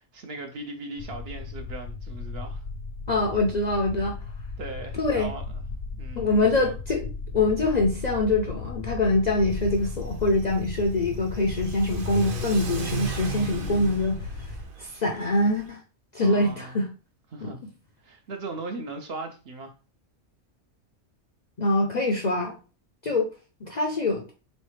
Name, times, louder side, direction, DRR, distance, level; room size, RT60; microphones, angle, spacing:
voice 1, 0.1-2.7 4.6-5.6 6.0-6.7 16.2-16.8 17.3-17.6 18.0-19.7, right 2 dB, 55° right, 0.8 m, -38 dB
sound 1, 1.0-14.7, left 4 dB, 70° left, 0.9 m, -36 dB
voice 2, 3.1-4.2 4.9-5.3 6.1-7.0 7.3-15.8 16.1-16.9 17.4-17.5 21.6-22.6 23.0-23.3 23.6-24.2, left 2 dB, 50° left, 0.5 m, -24 dB
Car / Accelerating revving vroom, 9.5-15.7, right 4 dB, 85° right, 1.2 m, -37 dB
3.9 x 3.2 x 3.1 m
omnidirectional pair, 1.4 m